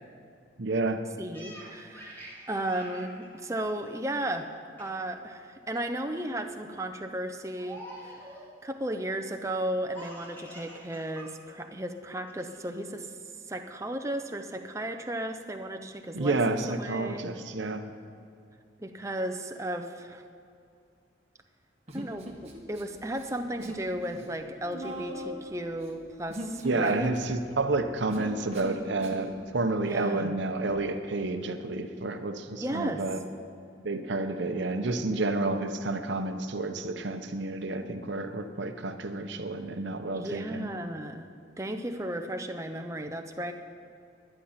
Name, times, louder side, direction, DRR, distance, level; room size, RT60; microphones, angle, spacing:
voice 1, 0.6-1.0 16.1-17.9 26.6-33.2 33.8-40.7, right 2 dB, 70° right, 7 dB, 0.8 m, -30 dB
voice 2, 1.2-8.3 8.6-13.1 13.5-17.3 18.8-20.2 21.9-27.1 29.9-30.4 32.6-33.0 40.1-41.3 41.6-43.5, right 1 dB, 15° right, 5 dB, 0.6 m, -35 dB
Laughter, 1.3-4.4 4.8-5.1 5.4-6.0 6.5-6.8 7.6-8.5 9.9-11.3 11.6-11.7 12.3-12.8, right 1 dB, 10° left, 2.1 m, -47 dB
Human voice, 21.9-22.8 23.1-23.9 24.1-29.3, right 1 dB, 35° right, 1.4 m, -40 dB
11.5 x 10.0 x 5.7 m, 2.4 s
head